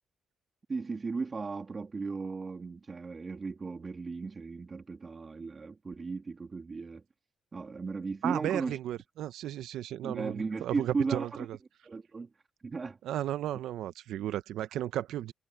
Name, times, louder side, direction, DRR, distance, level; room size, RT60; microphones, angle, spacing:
voice 1, 0.7-7.0 7.5-8.8 10.0-11.5 11.8-12.3 12.6-13.0, right 4 dB, 35° right, 2.5 m, -36 dB
voice 2, 8.2-11.6 13.0-15.3, right 12 dB, 80° right, 0.9 m, -34 dB
cardioid pair, 90°, 0 cm